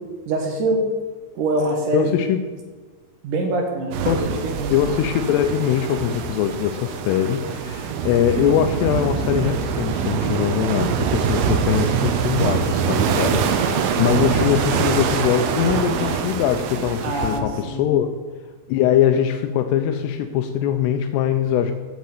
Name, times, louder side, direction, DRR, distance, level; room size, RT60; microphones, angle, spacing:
voice 1, 0.3-0.8 1.4-2.1 3.2-4.7 17.0-17.9, right 2 dB, 60° right, 2 dB, 2.5 m, -24 dB
voice 2, 1.9-2.5 4.1-4.3 4.7-18.1 18.7-21.7, left 10 dB, 85° left, 7 dB, 2.4 m, -22 dB
sound 1, 3.9-17.4, right 6 dB, 80° right, 2.1 m, -24 dB
9.5 x 8.4 x 8.0 m, 1.4 s
omnidirectional pair, 5.5 m